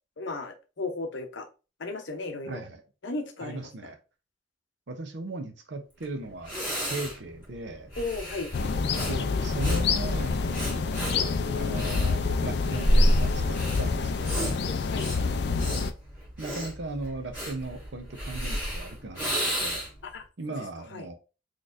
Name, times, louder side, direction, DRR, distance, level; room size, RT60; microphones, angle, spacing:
voice 1, 0.2-1.5 1.8-2.6 3.0-3.7 8.0-8.5 14.6-15.1 20.0-20.2 20.9-21.1, left 3 dB, 75° left, 0.7 m, -35 dB
voice 2, 2.4-2.8 3.4-4.0 4.9-6.6 6.8-7.9 9.1-10.7 11.1-14.6 16.4-19.9 20.4-21.1, right 2 dB, 70° right, 0.7 m, -37 dB
Breathing, 6.0-6.1 6.4-20.1, equal, 10° right, 2.2 m, -30 dB
sound 1, 8.5-15.9, left 4 dB, 60° left, 0.3 m, -27 dB
4.0 x 3.1 x 2.5 m
head